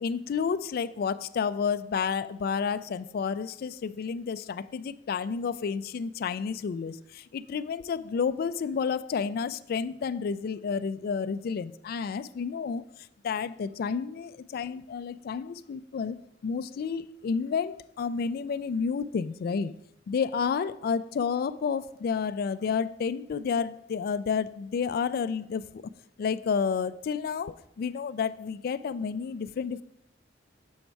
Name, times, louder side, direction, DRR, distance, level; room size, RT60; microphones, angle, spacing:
voice 1, 0.0-12.8 13.2-19.7 20.1-25.8 26.2-29.8, left 6 dB, 55° left, 0.3 m, -30 dB
7.1 x 5.3 x 4.5 m
head